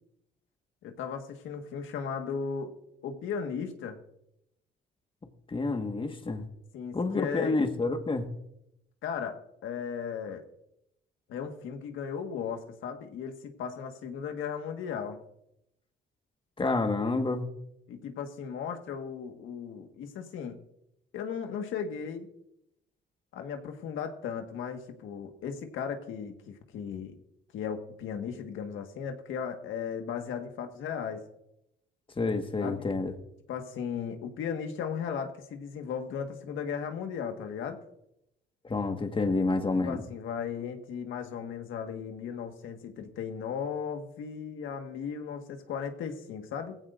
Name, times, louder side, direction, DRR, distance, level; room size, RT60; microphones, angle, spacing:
voice 1, 0.8-2.7 3.0-4.0 6.7-7.5 9.0-10.4 11.3-15.2 17.9-20.6 21.1-22.3 23.3-27.2 27.5-31.2 32.6-32.8 33.5-37.8 39.8-46.8, left 7 dB, 85° left, 5 dB, 1.7 m, -36 dB
voice 2, 5.5-6.4 6.9-8.3 16.6-17.5 32.2-33.1 38.6-40.0, left 3 dB, 25° left, 6 dB, 1.6 m, -28 dB
18.0 x 16.0 x 2.6 m, 0.81 s
cardioid pair, 90°, 20 cm